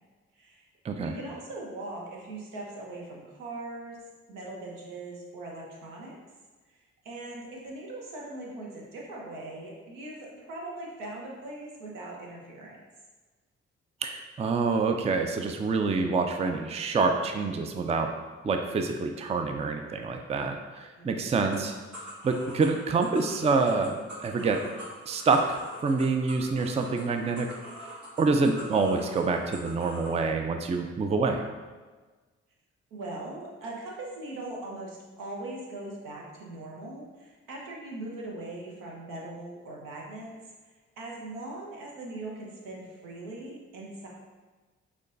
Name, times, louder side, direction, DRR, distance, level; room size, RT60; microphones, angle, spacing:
voice 1, 0.3-0.7 1.0-4.0 4.3-6.1 6.7-6.8 7.0-12.8 21.0-21.4 32.9-40.3 40.6-44.1, right 2 dB, 80° right, -2 dB, 0.9 m, -40 dB
voice 2, 14.0-18.1 18.4-21.7 22.2-23.9 24.2-24.6 25.1-27.5 28.2-31.4, right 4 dB, 20° right, 5 dB, 0.4 m, -26 dB
sound 1, 21.5-30.2, right 1 dB, 60° right, 1.4 m, -44 dB
6.3 x 2.3 x 2.6 m, 1.3 s
hypercardioid pair, 40°, 32 cm